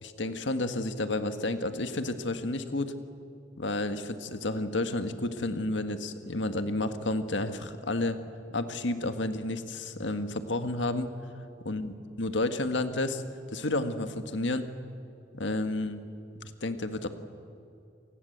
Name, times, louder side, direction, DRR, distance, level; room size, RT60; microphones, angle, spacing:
voice 1, 0.0-2.9 3.6-8.2 8.5-11.1 11.7-11.9 12.2-13.2 13.5-14.7 15.3-16.0 16.4-17.1, left 2 dB, 80° left, 8 dB, 1.7 m, -31 dB
28.5 x 19.0 x 8.1 m, 2.6 s
head